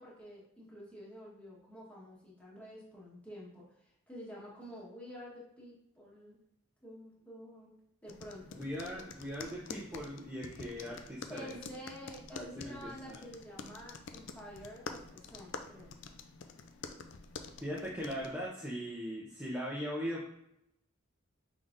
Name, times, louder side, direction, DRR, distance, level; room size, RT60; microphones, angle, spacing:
voice 1, 0.0-6.4 6.8-7.7 8.0-8.7 11.3-15.9, equal, 5° left, -6 dB, 1.2 m, -49 dB
sound 1, 8.1-18.5, left 5 dB, 60° left, 0.4 m, -48 dB
voice 2, 8.5-11.6 12.3-13.2 17.6-20.3, equal, 10° right, -6 dB, 0.6 m, -40 dB
5.6 x 3.5 x 2.5 m, 0.78 s
head